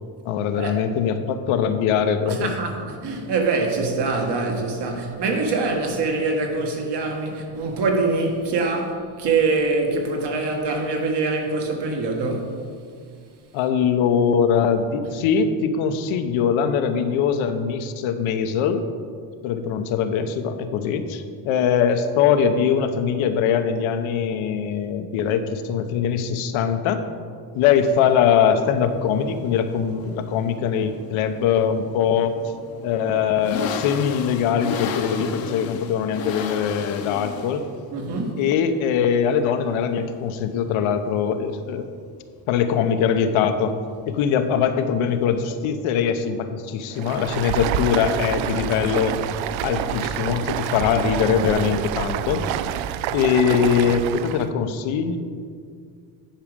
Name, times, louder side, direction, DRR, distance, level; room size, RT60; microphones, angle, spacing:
voice 1, 0.2-2.5 13.5-18.8 19.4-27.0 27.5-32.4 32.8-37.6 38.4-41.9 42.5-43.8 44.1-49.2 49.6-52.5 53.1-55.2, left 7 dB, 75° left, 0.9 m, -22 dB
voice 2, 2.3-12.5 37.9-38.3, right 3 dB, 55° right, 1.7 m, -24 dB
sound 1, 27.6-45.6, left 7 dB, 50° left, 0.8 m, -36 dB
Stream, 46.9-54.5, right 10 dB, 75° right, 0.5 m, -27 dB
10.5 x 5.0 x 5.1 m
cardioid pair, 100°, 48 cm